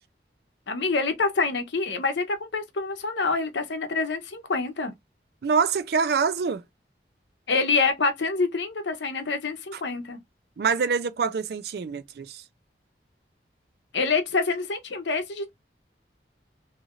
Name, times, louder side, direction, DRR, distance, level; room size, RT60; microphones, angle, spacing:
voice 1, 0.7-4.9 7.5-10.2 13.9-15.5, left 4 dB, 85° left, 0.7 m, -26 dB
voice 2, 5.4-6.6 10.6-12.4, right 5 dB, 60° right, 0.4 m, -25 dB
2.7 x 2.4 x 2.8 m
head